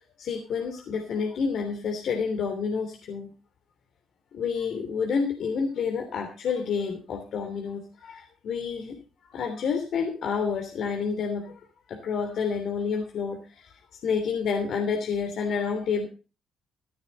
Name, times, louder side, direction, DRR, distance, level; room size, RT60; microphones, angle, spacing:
voice 1, 0.2-3.3 4.3-9.0 9.2-11.6 11.9-13.7 14.0-16.1, left 5 dB, 65° left, 3 dB, 3.0 m, -29 dB
14.5 x 11.5 x 4.0 m, 0.34 s
cardioid pair, 90°, 0 cm